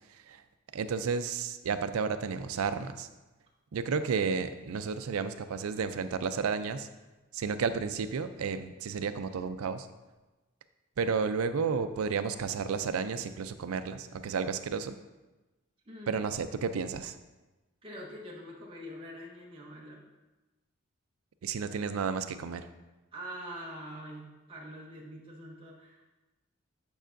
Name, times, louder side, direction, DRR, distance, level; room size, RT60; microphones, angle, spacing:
voice 1, 0.7-3.1 3.7-6.9 7.3-9.9 11.0-15.0 16.1-17.2 21.4-22.6, right 5 dB, 90° right, 11 dB, 0.4 m, -32 dB
voice 2, 15.9-16.2 17.8-20.1 23.1-26.1, equal, 25° right, -4 dB, 0.9 m, -44 dB
9.0 x 5.5 x 2.5 m, 1.1 s
head